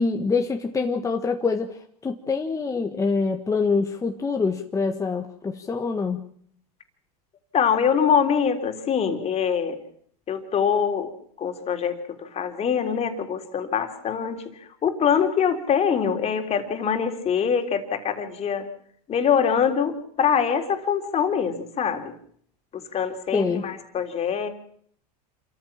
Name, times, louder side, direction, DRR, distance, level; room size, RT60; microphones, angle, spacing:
voice 1, 0.0-6.2 23.3-23.7, left 4 dB, 15° left, 4 dB, 1.5 m, -25 dB
voice 2, 7.5-9.8 10.3-11.1 11.4-14.4 14.8-18.7 19.1-22.1 22.9-24.5, left 7 dB, 30° left, 6 dB, 3.5 m, -24 dB
27.0 x 14.0 x 7.4 m, 0.63 s
supercardioid pair, 115°, 21 cm